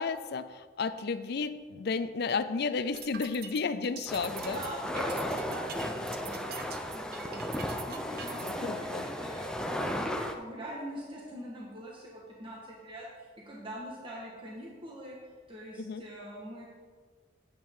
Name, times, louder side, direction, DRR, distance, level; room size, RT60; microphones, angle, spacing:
voice 1, 0.0-4.6 8.4-9.0 15.8-16.0, left 4 dB, 60° left, 12 dB, 0.5 m, -33 dB
sound 1, 2.8-8.5, right 7 dB, 55° right, 0.7 m, -44 dB
sound 2, 4.1-10.3, left 1 dB, 5° left, 0.6 m, -35 dB
voice 2, 4.3-6.4 6.9-7.4 7.9-15.2 15.5-16.7, equal, 30° right, -4 dB, 1.5 m, -43 dB
8.8 x 8.7 x 3.8 m, 1.5 s
head